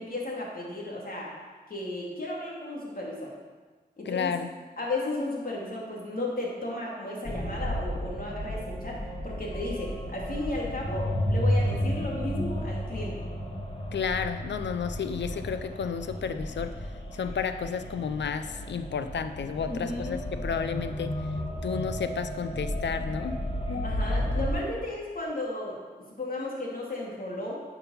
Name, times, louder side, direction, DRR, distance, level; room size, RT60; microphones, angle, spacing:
voice 1, 0.0-1.3 1.7-3.3 4.0-4.3 4.8-9.0 9.2-13.1 19.6-20.2 23.8-25.8 26.1-27.6, left 2 dB, 55° left, -3 dB, 2.9 m, -34 dB
voice 2, 4.1-4.5 13.9-16.7 17.1-21.1 21.6-23.4 23.7-24.0, left 6 dB, 85° left, 9 dB, 0.6 m, -32 dB
sound 1, 7.2-24.5, equal, 30° left, 1.7 m, -32 dB
9.9 x 5.9 x 5.7 m, 1.4 s
cardioid pair, 55°, 18 cm